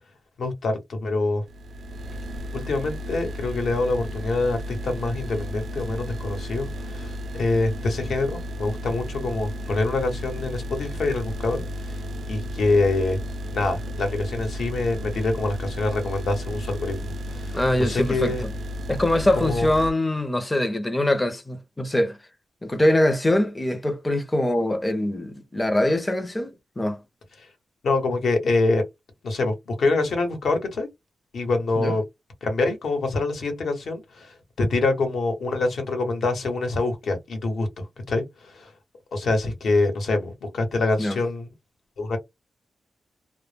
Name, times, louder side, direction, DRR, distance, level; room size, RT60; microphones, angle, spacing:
voice 1, 0.4-1.4 2.5-12.0 12.3-13.2 13.5-18.4 19.4-19.7 27.8-28.8 29.2-30.9 31.3-32.0 32.4-37.7 38.1-38.7 39.1-41.5 42.0-42.2, left 2 dB, 70° left, 1.0 m, -25 dB
sound 1, 1.5-19.9, equal, 70° right, 0.3 m, -33 dB
voice 2, 17.5-18.5 18.9-22.2 22.6-27.0 31.8-32.0 41.0-41.2, left 1 dB, 15° left, 0.5 m, -23 dB
2.1 x 2.0 x 3.2 m
wide cardioid pair, 115°, 0 cm